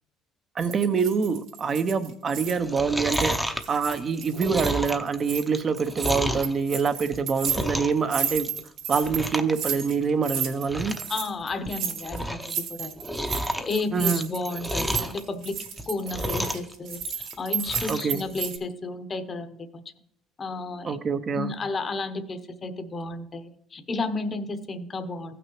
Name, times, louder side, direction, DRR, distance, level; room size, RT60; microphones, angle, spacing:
voice 1, 0.6-3.4 3.7-8.5 8.9-11.0 13.9-14.3 17.9-18.2 20.8-21.5, right 5 dB, 40° right, 11 dB, 0.7 m, -25 dB
sound 1, 0.6-2.8 3.0-5.4 5.8-18.6, right 7 dB, 80° right, 2.3 m, -33 dB
Chewing mastication, 2.5-6.5 7.0-8.1 8.3-8.7 9.0-9.5 9.8-9.9 10.4-10.5 10.7-11.1 11.5-12.5 12.8-15.2 15.7-16.7 17.0-18.1 18.5-18.6, equal, ahead, 0.7 m, -31 dB
voice 2, 11.1-12.9 13.3-15.6 15.9-19.8 20.4-21.0 21.3-25.3, left 3 dB, 35° left, 9 dB, 1.0 m, -32 dB
16.0 x 6.0 x 3.1 m, 0.74 s
cardioid pair, 100°, 0 cm